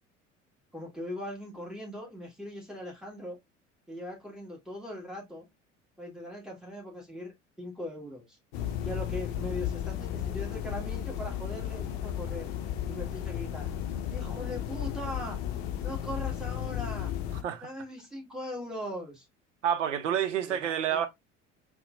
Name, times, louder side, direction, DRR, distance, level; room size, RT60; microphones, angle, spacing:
voice 1, 0.7-3.4 3.9-5.5 6.0-8.4 8.8-12.5 12.9-13.7 14.1-15.4 15.8-17.1 17.6-19.3 20.5-21.0, equal, ahead, 1.7 m, -40 dB
sound 1, 8.5-17.4, left 10 dB, 60° left, 0.6 m, -34 dB
voice 2, 19.6-21.1, right 9 dB, 75° right, 0.6 m, -28 dB
4.2 x 2.2 x 2.5 m
figure-of-eight pair, 65°, 37 cm